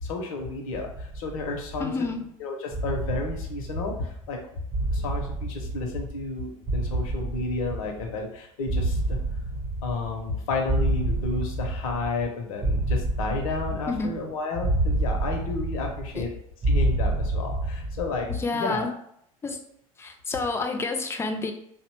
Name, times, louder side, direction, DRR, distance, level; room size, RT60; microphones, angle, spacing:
voice 1, 0.0-1.9 2.4-4.4 4.9-9.2 9.8-16.3 16.7-18.9, left 3 dB, 65° left, 2 dB, 0.6 m, -31 dB
sound 1, 0.7-2.1 2.7-4.3 4.7-6.3 6.7-8.3 8.7-10.3 10.7-12.3 12.6-14.2 14.6-16.3 16.6-18.3, right 1 dB, 35° right, 0.8 m, -28 dB
voice 2, 1.8-2.3 4.9-5.0 13.9-14.1 16.1-16.3 18.3-18.9 19.4-19.6 20.0-21.5, left 3 dB, 15° left, 6 dB, 0.4 m, -29 dB
2.6 x 2.0 x 2.9 m, 0.71 s
hypercardioid pair, 75°, 18 cm